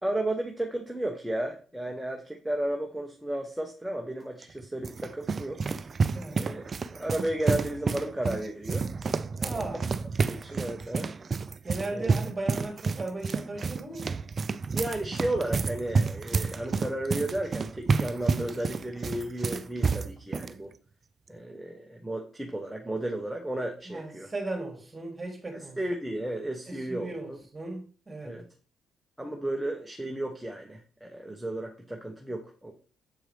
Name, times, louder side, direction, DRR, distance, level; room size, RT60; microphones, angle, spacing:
voice 1, 0.0-5.6 6.3-8.8 9.4-9.8 10.2-11.1 11.9-12.1 14.7-20.7 21.3-24.3 25.5-27.4 28.2-28.4 29.2-32.8, right 1 dB, 5° right, 1.0 m, -33 dB
sound 1, 4.4-20.5, right 4 dB, 40° right, 0.4 m, -30 dB
voice 2, 6.1-6.5 9.4-9.8 11.6-14.1 23.9-25.8 26.7-28.3, right 2 dB, 20° right, 2.6 m, -37 dB
7.6 x 4.6 x 3.4 m
cardioid pair, 90°, 0 cm